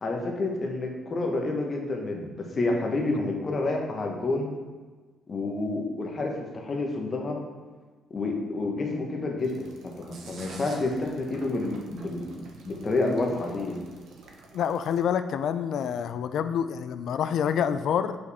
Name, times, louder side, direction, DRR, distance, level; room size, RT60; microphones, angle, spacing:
voice 1, 0.0-4.5 5.3-7.4 8.1-9.7 10.0-12.3 12.6-13.8, left 2 dB, 40° left, 1 dB, 1.1 m, -29 dB
sound 1, 9.4-15.0, right 3 dB, 70° right, 0.9 m, -48 dB
voice 2, 14.5-18.2, left 8 dB, 70° left, 11 dB, 0.4 m, -27 dB
6.3 x 5.0 x 3.5 m, 1.4 s
cardioid pair, 90°, 0 cm